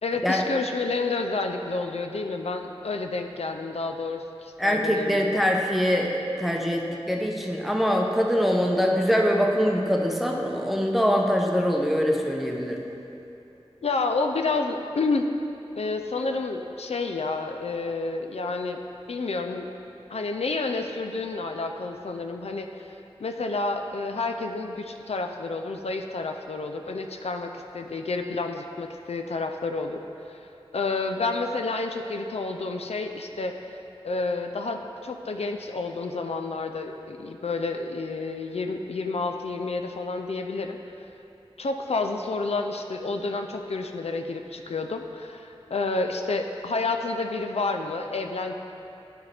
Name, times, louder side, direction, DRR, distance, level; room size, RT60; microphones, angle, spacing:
voice 1, 0.0-5.4 13.8-15.3 15.8-18.8 19.1-19.7 20.1-22.9 23.2-30.0 30.3-30.4 30.7-33.8 34.0-40.8 41.6-48.5, left 3 dB, 80° left, 4 dB, 0.4 m, -29 dB
voice 2, 4.6-12.8, equal, ahead, 0 dB, 0.7 m, -23 dB
10.5 x 4.2 x 3.3 m, 2.8 s
wide cardioid pair, 55°, 10 cm